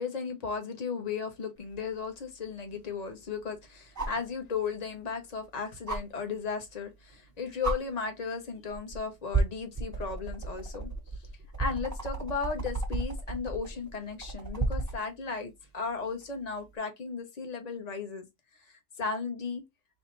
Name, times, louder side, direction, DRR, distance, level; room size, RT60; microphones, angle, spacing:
voice 1, 0.0-10.9 11.6-18.2 18.7-19.6, left 5 dB, 40° left, 1.0 m, -35 dB
sound 1, 1.7-1.8 4.0-4.3 5.9-6.0 7.1-7.3 7.6-7.8 8.7-9.0 9.3-15.0 16.7-16.8, right 3 dB, 15° right, 0.8 m, -32 dB
3.2 x 2.8 x 4.4 m
omnidirectional pair, 1.2 m